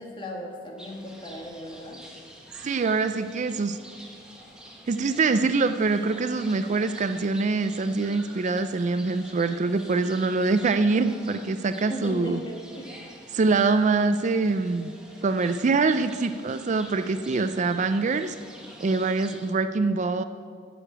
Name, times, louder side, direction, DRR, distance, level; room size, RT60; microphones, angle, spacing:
voice 1, 0.0-2.0 11.7-13.1, left 1 dB, 25° left, -1 dB, 2.0 m, -37 dB
sound 1, 0.8-19.5, equal, 5° right, 1.5 m, -47 dB
voice 2, 2.6-3.8 4.9-12.4 13.3-14.9 15.2-18.3 18.8-20.2, right 3 dB, 40° right, 10 dB, 0.4 m, -24 dB
11.0 x 6.7 x 8.8 m, 2.1 s
head